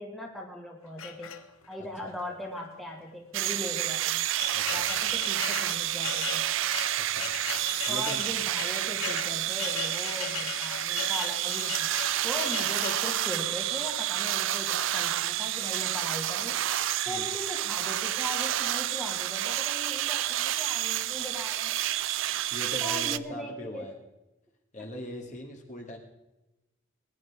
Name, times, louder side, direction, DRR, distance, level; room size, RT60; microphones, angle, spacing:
voice 1, 0.0-1.4 1.7-4.3 4.7-6.5 7.9-11.9 12.2-16.6 17.1-21.8 22.8-23.9 24.8-24.9, left 1 dB, ahead, -2 dB, 2.0 m, -39 dB
sound 1, 1.0-1.8 2.6-2.7 3.0-3.1 3.8-13.1, left 8 dB, 85° left, 1.2 m, -38 dB
voice 2, 1.8-2.1 4.5-4.9 7.1-7.3 7.9-8.2 17.1-17.3 22.5-23.9 24.7-26.0, left 1 dB, 35° left, 1 dB, 2.1 m, -40 dB
sound 2, 3.3-23.2, right 13 dB, 65° right, 0.4 m, -29 dB
20.5 x 11.0 x 3.6 m, 0.97 s
head